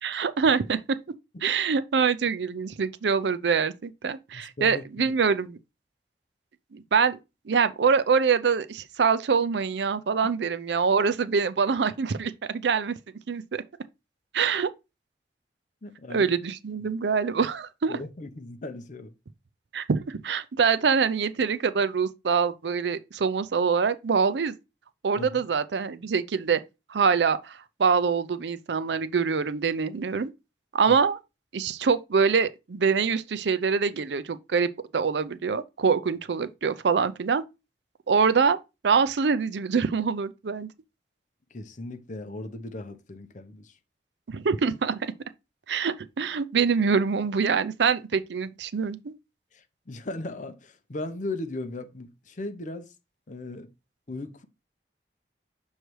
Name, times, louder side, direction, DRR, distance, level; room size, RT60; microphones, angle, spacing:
voice 1, 0.0-0.8 1.4-5.6 6.7-7.2 7.5-12.9 13.3-13.6 14.3-14.7 16.1-18.0 19.7-24.5 25.0-26.6 26.9-30.3 30.7-31.2 31.5-37.4 38.1-38.6 38.8-40.7 44.3-45.0 45.7-49.1, right 5 dB, 75° right, 0.5 m, -25 dB
voice 2, 4.3-5.1 15.8-16.3 16.8-16.9 17.9-19.1 25.2-25.4 41.5-43.7 49.5-52.9 53.3-53.7 54.1-54.5, left 2 dB, 45° left, 0.7 m, -37 dB
6.5 x 3.2 x 4.5 m
head